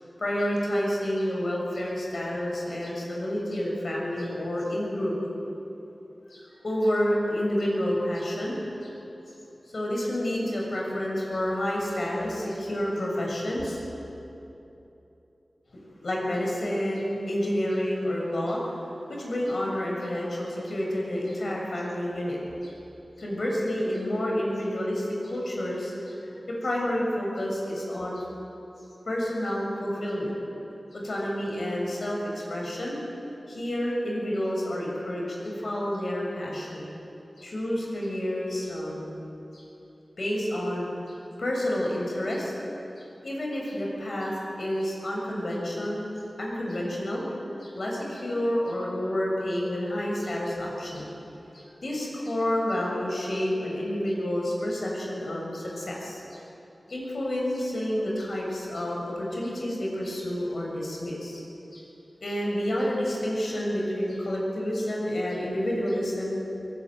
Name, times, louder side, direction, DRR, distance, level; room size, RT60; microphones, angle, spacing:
voice 1, 0.2-5.1 6.3-8.9 9.7-13.8 16.0-18.6 19.1-22.7 23.2-26.1 26.6-28.2 29.1-30.3 30.9-33.0 33.5-36.8 37.4-39.1 39.5-39.6 40.2-42.5 43.0-46.1 46.4-47.2 47.6-51.1 51.5-56.4 56.9-61.4 61.7-61.8 62.2-66.5, equal, 70° left, -2 dB, 7.1 m, -29 dB
23.0 x 18.5 x 9.6 m, 3.0 s
wide cardioid pair, 75°, 0 cm